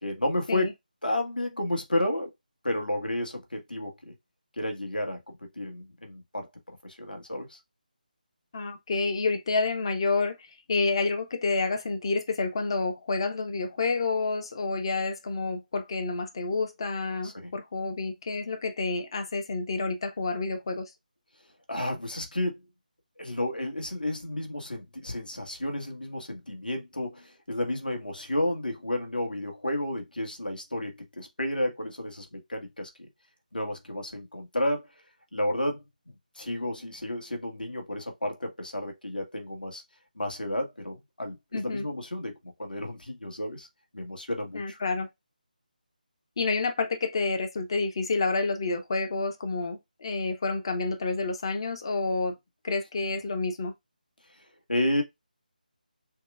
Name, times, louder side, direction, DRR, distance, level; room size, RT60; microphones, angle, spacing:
voice 1, 0.0-0.7 1.0-2.3 2.6-4.1 4.6-7.6 17.2-17.5 21.7-22.6 23.2-32.9 33.5-34.9 35.3-39.8 40.1-43.7 43.9-44.8 54.7-55.0, left 1 dB, 75° left, 1.4 m, -32 dB
voice 2, 8.5-10.4 10.7-20.9 41.5-41.9 44.5-45.1 46.4-52.4 52.6-53.7, left 3 dB, 35° left, 0.6 m, -29 dB
6.3 x 2.2 x 2.4 m
figure-of-eight pair, 155°, 5 cm